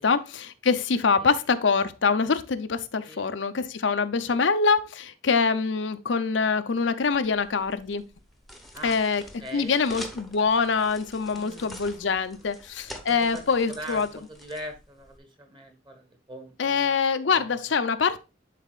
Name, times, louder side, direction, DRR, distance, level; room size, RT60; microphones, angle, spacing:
voice 1, 0.0-8.0 8.8-9.2 9.5-14.1 16.6-18.2, left 5 dB, 75° left, 0.6 m, -24 dB
sound 1, 7.1-15.2, left 1 dB, ahead, 0.9 m, -46 dB
voice 2, 8.7-9.8 11.3-12.5 13.0-16.9 17.3-17.6, right 1 dB, 25° right, 1.4 m, -42 dB
11.0 x 4.1 x 2.4 m
head